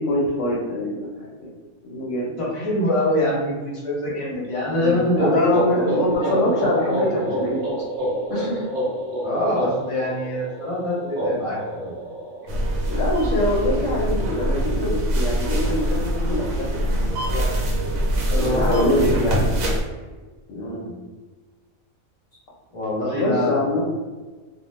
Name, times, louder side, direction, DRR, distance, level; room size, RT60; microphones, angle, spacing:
voice 1, 0.0-1.5 1.8-2.4 5.1-7.6 8.3-8.6 12.9-16.9 17.3-17.5 18.3-19.5 20.5-20.8 23.1-23.9, left 1 dB, 70° left, -4 dB, 0.9 m, -24 dB
voice 2, 2.4-6.6 7.0-7.3 9.2-12.0 18.3-19.2 20.5-20.9 22.7-23.6, left 1 dB, 35° left, -6 dB, 0.6 m, -25 dB
sound 1, 4.8-12.5, right 1 dB, 60° right, 0.6 m, -27 dB
sound 2, 12.5-19.8, right 1 dB, 75° right, 1.0 m, -23 dB
2.3 x 2.1 x 3.0 m, 1.3 s
omnidirectional pair, 1.4 m